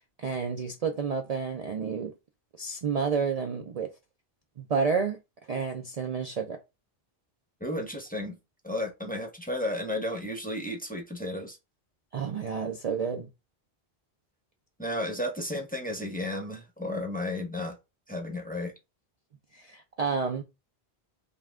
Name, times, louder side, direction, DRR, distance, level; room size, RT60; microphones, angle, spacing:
voice 1, 0.2-2.1 2.6-3.9 4.6-5.2 5.5-6.6 12.1-13.3 19.5-20.4, right 5 dB, 45° right, 0.5 m, -30 dB
voice 2, 7.6-8.4 8.6-11.6 14.8-17.8 18.1-18.7, left 1 dB, 10° left, 0.8 m, -33 dB
5.4 x 2.3 x 3.5 m
omnidirectional pair, 1.1 m